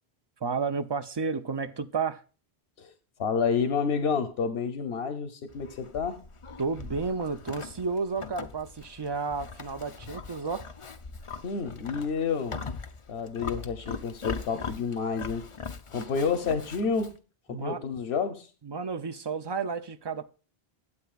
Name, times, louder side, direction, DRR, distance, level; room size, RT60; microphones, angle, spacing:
voice 1, 0.4-2.2 6.6-10.7 17.5-17.8 18.6-20.3, right 5 dB, 30° right, 0.6 m, -32 dB
voice 2, 3.2-6.2 11.4-12.6 13.1-15.4 15.9-17.1 17.5-18.5, left 5 dB, 85° left, 1.1 m, -29 dB
Livestock farm animals working animals, 5.5-17.2, left 5 dB, 35° left, 0.6 m, -41 dB
12.5 x 8.1 x 2.4 m
omnidirectional pair, 1.0 m